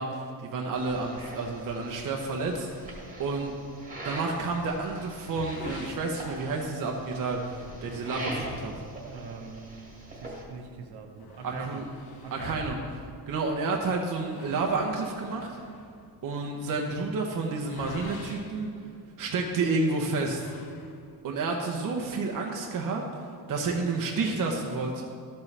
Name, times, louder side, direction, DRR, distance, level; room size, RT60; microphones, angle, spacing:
voice 1, 0.0-2.9 3.2-3.5 4.0-8.7 11.4-11.8 12.3-12.8 13.3-15.5 16.2-18.7 19.2-20.5 21.2-23.0 23.5-25.0, right 3 dB, 50° right, 1 dB, 0.8 m, -30 dB
sound 1, 0.7-10.4, right 1 dB, 20° right, 1.7 m, -42 dB
sound 2, 5.4-6.9 7.4-7.5 7.9-8.0 8.8-10.1 10.5-10.6 10.8-19.5 20.2-21.3, left 4 dB, 60° left, 1.0 m, -49 dB
voice 2, 9.0-11.9 12.2-12.7, right 5 dB, 65° right, 3 dB, 1.1 m, -42 dB
13.0 x 7.3 x 3.3 m, 2.3 s
cardioid pair, 165°, 42 cm